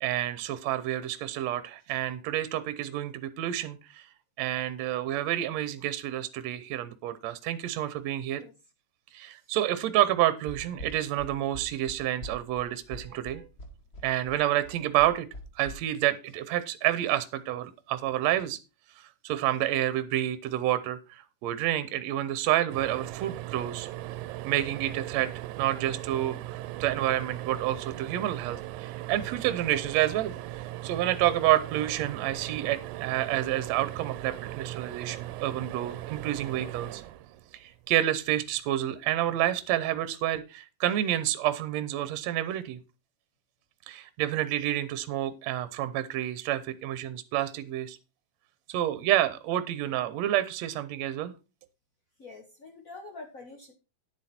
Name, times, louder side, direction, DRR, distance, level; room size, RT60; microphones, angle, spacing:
voice 1, 0.0-4.1 4.4-8.4 9.1-13.5 14.0-15.3 15.6-18.6 19.0-23.9 24.4-25.3 25.6-37.0 37.6-42.8 43.9-48.0 48.7-51.3, right 13 dB, 70° right, 14 dB, 1.9 m, -29 dB
sound 1, 10.5-15.7, equal, 30° left, 1.4 m, -43 dB
sound 2, 22.7-38.0 39.6-39.8 40.1-40.2, right 15 dB, 90° right, 2.1 m, -39 dB
voice 2, 52.2-53.7, left 3 dB, 55° left, 3 dB, 0.9 m, -46 dB
10.0 x 7.5 x 4.3 m, 0.29 s
omnidirectional pair, 3.4 m